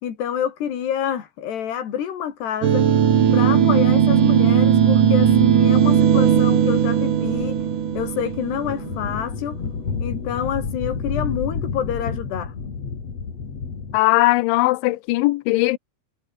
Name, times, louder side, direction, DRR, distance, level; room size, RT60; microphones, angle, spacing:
voice 1, 0.0-2.9 3.3-7.6 7.9-9.6 10.0-12.5, left 9 dB, 55° left, 4.8 m, -27 dB
sound 1, 2.6-9.2, right 8 dB, 50° right, 3.2 m, -17 dB
sound 2, 5.2-14.0, left 5 dB, 35° left, 4.1 m, -31 dB
voice 2, 13.9-15.8, left 20 dB, 80° left, 2.9 m, -19 dB
omnidirectional pair, 6.0 m